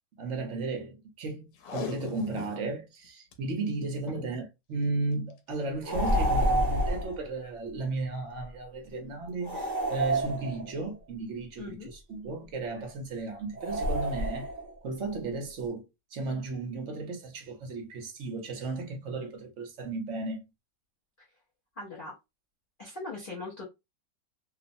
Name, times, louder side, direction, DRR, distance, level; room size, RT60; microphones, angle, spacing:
voice 1, 0.2-14.5 14.8-15.8 16.1-20.4, right 3 dB, 55° right, 0.9 m, -35 dB
Packing tape duct tape, 1.6-2.7 3.0-3.3 4.0-4.3 5.3-5.5 6.1-6.2, left 8 dB, 85° left, 1.3 m, -39 dB
sound 1, 5.8-7.2 9.4-10.9 13.6-14.7, right 1 dB, 30° right, 0.9 m, -28 dB
voice 2, 11.6-11.9 21.8-22.1 22.8-23.6, left 3 dB, 65° left, 0.5 m, -40 dB
3.0 x 2.0 x 2.6 m
omnidirectional pair, 2.0 m